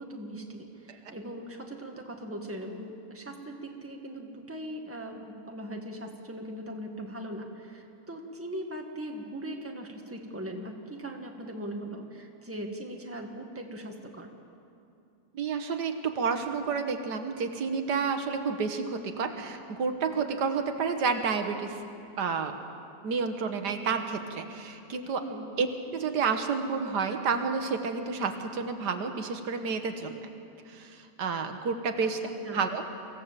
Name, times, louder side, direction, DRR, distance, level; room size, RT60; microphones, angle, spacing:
voice 1, 0.0-14.3 25.2-25.5 32.0-32.6, right 1 dB, 10° right, 2 dB, 1.7 m, -40 dB
voice 2, 15.3-21.8 22.2-22.6 23.0-25.2 25.6-30.3 30.7-32.2 32.5-32.8, right 5 dB, 90° right, 6 dB, 1.9 m, -30 dB
24.0 x 16.0 x 7.5 m, 2.6 s
omnidirectional pair, 1.8 m